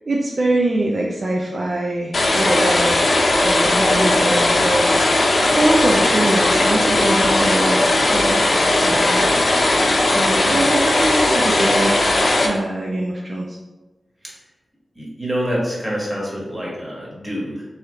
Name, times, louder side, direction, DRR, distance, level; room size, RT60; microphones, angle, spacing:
voice 1, 0.1-4.9 5.5-7.8 8.1-9.3 10.1-13.6, right 2 dB, 55° right, -2 dB, 0.4 m, -23 dB
sound 1, 2.1-12.5, left 2 dB, 60° left, 0.6 m, -17 dB
voice 2, 14.9-17.7, equal, 20° right, -5 dB, 1.4 m, -26 dB
3.1 x 3.0 x 3.6 m, 1.1 s
wide cardioid pair, 70°, 0 cm